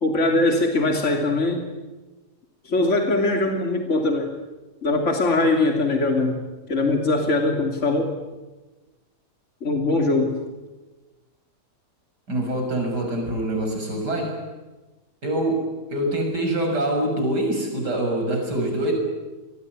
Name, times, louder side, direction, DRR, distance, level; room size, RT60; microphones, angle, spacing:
voice 1, 0.0-1.7 2.6-4.3 4.8-6.4 6.7-8.1 9.6-10.4, left 2 dB, 45° left, 3 dB, 3.3 m, -21 dB
voice 2, 12.3-14.4 15.2-18.9, right 1 dB, 85° right, 3 dB, 7.7 m, -25 dB
28.0 x 21.0 x 9.6 m, 1.2 s
omnidirectional pair, 1.7 m